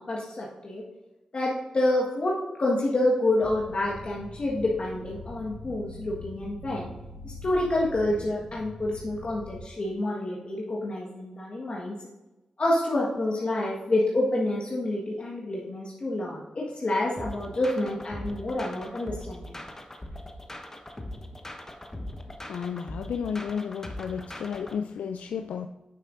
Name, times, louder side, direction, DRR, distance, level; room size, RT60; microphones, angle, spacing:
voice 1, 0.1-0.8 1.3-6.9 7.2-11.9 12.6-19.4, left 1 dB, 50° left, -4 dB, 1.5 m, -28 dB
sound 1, 3.4-9.6, left 1 dB, 20° right, 1.4 m, -43 dB
sound 2, 17.2-24.8, left 1 dB, 20° left, 1.1 m, -40 dB
voice 2, 22.5-25.7, left 7 dB, 80° left, 7 dB, 0.3 m, -32 dB
9.4 x 6.5 x 2.6 m, 1.0 s
supercardioid pair, 45°, 2 cm